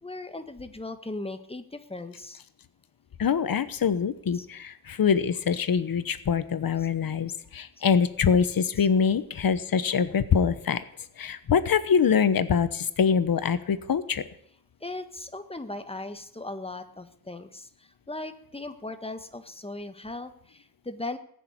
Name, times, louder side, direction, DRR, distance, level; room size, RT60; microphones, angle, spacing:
voice 1, 0.0-2.4 4.3-4.5 8.8-8.9 14.8-17.7 18.1-21.2, left 2 dB, 15° left, 9 dB, 1.4 m, -38 dB
voice 2, 3.2-10.8 11.2-14.2, left 6 dB, 80° left, 13 dB, 1.0 m, -24 dB
19.5 x 6.7 x 9.5 m, 0.69 s
wide cardioid pair, 90°, 34 cm